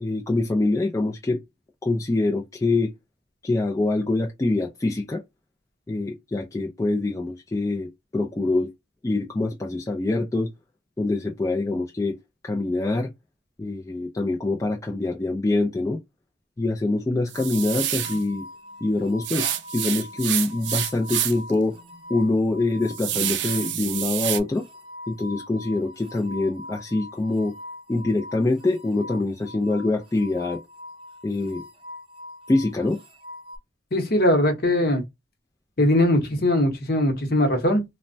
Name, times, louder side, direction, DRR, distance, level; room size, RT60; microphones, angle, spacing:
voice 1, 0.0-1.4 1.8-2.9 3.4-5.2 5.9-8.7 9.0-10.5 11.0-12.2 12.4-13.1 13.6-16.0 16.6-18.5 18.8-21.8 22.1-24.6 25.1-27.5 27.9-30.6 31.2-31.6 32.5-33.0, left 2 dB, 15° left, 0.3 m, -25 dB
sound 1, 17.3-33.6, left 2 dB, 30° right, 0.8 m, -42 dB
sound 2, 17.3-18.2 19.2-21.5 21.9-22.0 22.5-24.4, right 11 dB, 65° right, 0.4 m, -28 dB
voice 2, 33.9-35.0 35.8-37.8, left 1 dB, 50° left, 0.9 m, -20 dB
3.1 x 2.1 x 2.6 m
head